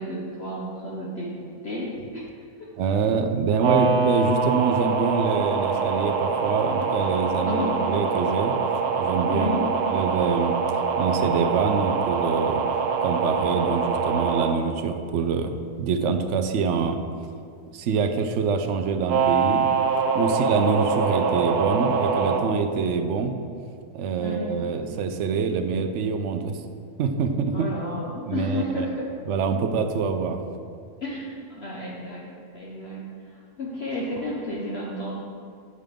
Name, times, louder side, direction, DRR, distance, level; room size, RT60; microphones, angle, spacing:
voice 1, 0.0-2.2 2.6-2.7 7.5-7.8 9.3-9.7 20.1-20.2 24.2-24.6 27.5-29.1 31.0-35.2, left 1 dB, 50° left, -4 dB, 1.1 m, -32 dB
voice 2, 2.8-8.5 9.0-9.6 9.9-10.6 11.0-12.6 13.0-17.0 17.7-19.7 20.1-23.3 23.9-26.6 27.0-27.7 28.3-28.9 29.3-30.4, right 5 dB, 65° right, 7 dB, 0.8 m, -25 dB
sound 1, 3.6-14.5 19.1-22.4, right 5 dB, 85° right, 1.2 m, -24 dB
8.9 x 6.6 x 3.5 m, 2.3 s
omnidirectional pair, 1.6 m